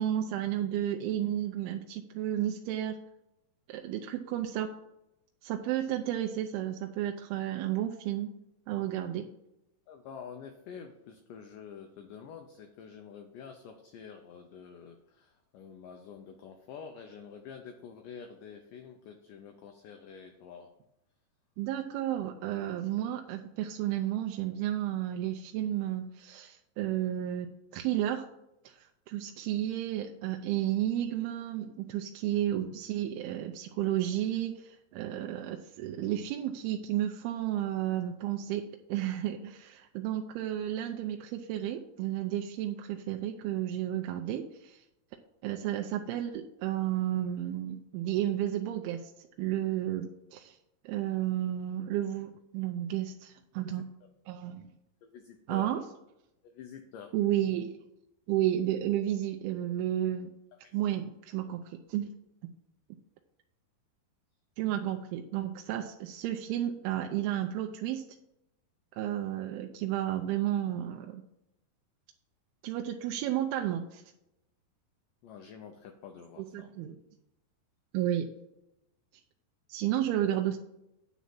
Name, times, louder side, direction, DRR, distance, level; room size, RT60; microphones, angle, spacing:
voice 1, 0.0-3.0 3.7-4.7 5.4-8.3 8.7-9.3 21.6-28.2 28.7-38.6 38.9-44.8 45.4-49.1 49.4-50.6 50.9-53.9 54.3-54.7 55.5-55.8 57.1-57.8 58.3-60.3 60.7-62.1 64.6-68.0 69.0-71.2 72.6-74.0 76.5-77.0 77.9-78.3 79.7-80.6, right 12 dB, 80° right, 4 dB, 2.4 m, -32 dB
voice 2, 9.9-20.7 53.7-53.8 55.0-55.8 56.4-57.1 60.5-60.8 75.2-76.7, left 6 dB, 90° left, 5 dB, 1.8 m, -48 dB
9.3 x 4.1 x 7.4 m, 0.86 s
omnidirectional pair, 4.7 m